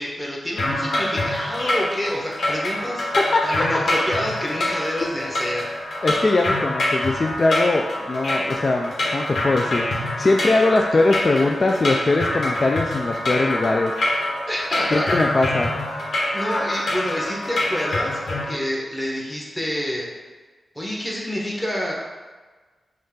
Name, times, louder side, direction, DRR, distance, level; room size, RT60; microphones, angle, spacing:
voice 1, 0.0-3.0 3.4-5.7 5.9-6.1 14.5-15.2 16.3-20.1 20.7-21.9, equal, 15° left, -3 dB, 1.3 m, -28 dB
sound 1, 0.6-18.4, left 1 dB, 70° left, 1.3 m, -25 dB
voice 2, 6.0-13.9 14.9-15.7, left 2 dB, 50° left, 2 dB, 0.3 m, -21 dB
5.2 x 2.4 x 3.8 m, 1.4 s
cardioid pair, 45°, 0 cm